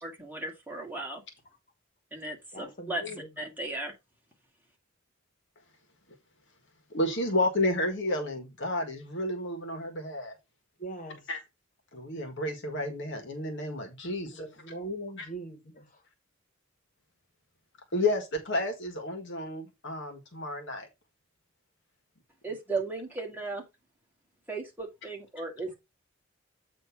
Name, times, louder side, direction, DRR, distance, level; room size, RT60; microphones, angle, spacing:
voice 1, 0.0-1.2 2.1-3.0 3.4-3.9 22.4-23.6 24.5-25.8, right 2 dB, 10° right, 2.2 m, -36 dB
voice 2, 2.5-3.3 10.8-11.3 14.2-16.0, right 1 dB, 40° left, 1.9 m, -41 dB
voice 3, 6.9-10.3 11.3-11.4 11.9-14.4 17.9-20.9, left 1 dB, 55° left, 1.6 m, -31 dB
8.3 x 3.1 x 5.8 m
head